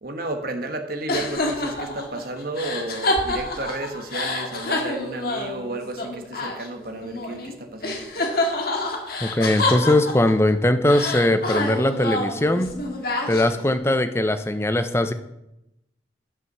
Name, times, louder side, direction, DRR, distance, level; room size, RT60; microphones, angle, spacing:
voice 1, 0.0-8.1, right 2 dB, 55° right, 5 dB, 1.3 m, -32 dB
sound 1, 1.1-7.5 7.8-10.5 10.9-13.7, left 2 dB, 55° left, 1.8 m, -27 dB
voice 2, 9.2-12.8 13.3-15.1, left 1 dB, 15° left, 10 dB, 0.6 m, -20 dB
11.0 x 6.0 x 6.6 m, 0.89 s
head